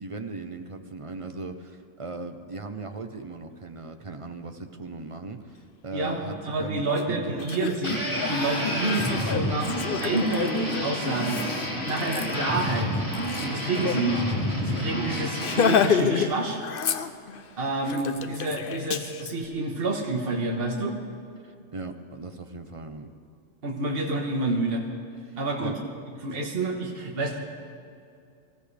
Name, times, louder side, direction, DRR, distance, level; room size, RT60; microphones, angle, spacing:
voice 1, 0.0-7.6 11.8-11.9 21.4-23.1 25.2-25.8 26.3-26.4, right 3 dB, 30° right, 6 dB, 0.7 m, -38 dB
voice 2, 5.9-11.4 11.9-13.0 13.4-14.2 14.6-16.6 17.6-21.0 23.6-24.9 25.4-25.8 26.2-27.4, right 2 dB, 45° right, 0 dB, 1.7 m, -28 dB
Laughter, 6.9-7.0 7.4-14.0 14.4-14.5 14.8-15.0 15.4-16.3 16.6-17.4 17.9-19.3, left 7 dB, 50° left, 0.7 m, -29 dB
sound 1, 7.8-15.8, equal, 20° left, 3.5 m, -29 dB
24.5 x 15.0 x 3.4 m, 2.4 s
omnidirectional pair, 1.4 m